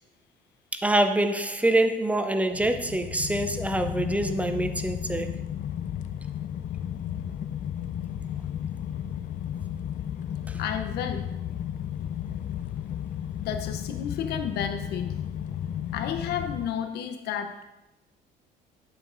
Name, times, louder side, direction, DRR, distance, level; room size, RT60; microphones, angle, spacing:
voice 1, 0.7-5.4 10.5-10.6, right 1 dB, 10° right, 0.5 m, -25 dB
sound 1, 2.5-16.7, left 10 dB, 50° left, 0.4 m, -34 dB
voice 2, 10.6-11.3 13.4-15.2 15.9-17.6, left 8 dB, 75° left, 0.8 m, -32 dB
8.8 x 7.1 x 2.6 m
cardioid pair, 110°, 17 cm